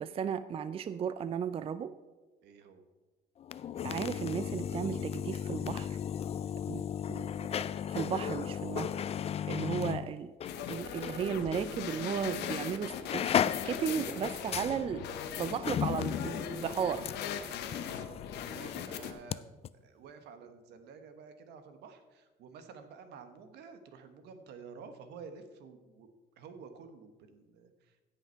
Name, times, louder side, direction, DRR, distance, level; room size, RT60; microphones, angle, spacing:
voice 1, 0.0-1.9 3.8-6.0 6.7-7.3 7.9-8.9 9.5-10.3 10.7-15.1 15.4-17.1, right 8 dB, 35° right, 13 dB, 0.4 m, -35 dB
voice 2, 2.4-2.8 8.7-8.8 9.5-9.7 17.7-19.5 19.8-26.1 26.4-28.0, right 5 dB, 80° right, 8 dB, 1.3 m, -51 dB
sound 1, 3.4-11.2 11.5-11.7 12.4-12.6 12.9-19.4 19.6-19.7, left 9 dB, 40° left, 0.4 m, -35 dB
sound 2, 10.4-19.1, left 8 dB, 85° left, 1.0 m, -40 dB
16.0 x 5.7 x 4.5 m, 1.2 s
cardioid pair, 110°, 17 cm